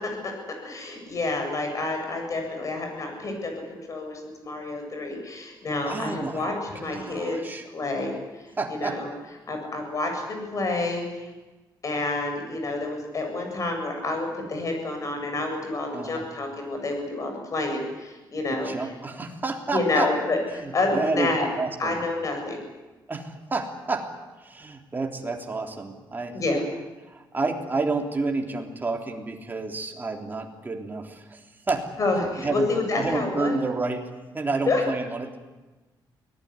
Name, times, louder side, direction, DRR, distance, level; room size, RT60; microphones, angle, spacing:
voice 1, 0.0-7.4 7.7-8.1 8.8-9.1 9.5-11.3 11.8-18.7 19.7-21.5 21.8-22.6 26.3-26.6 32.0-33.6 34.6-34.8, left 2 dB, 40° left, 4 dB, 7.7 m, -28 dB
voice 2, 5.8-6.5 6.7-7.7 8.6-9.0 15.9-16.3 18.5-20.1 20.4-21.3 21.6-22.0 23.1-24.1 24.4-26.4 27.0-31.9 32.4-32.7 32.9-35.5, right 3 dB, 25° right, 2 dB, 3.4 m, -30 dB
23.5 x 19.0 x 9.9 m, 1.2 s
cardioid pair, 130°, 8 cm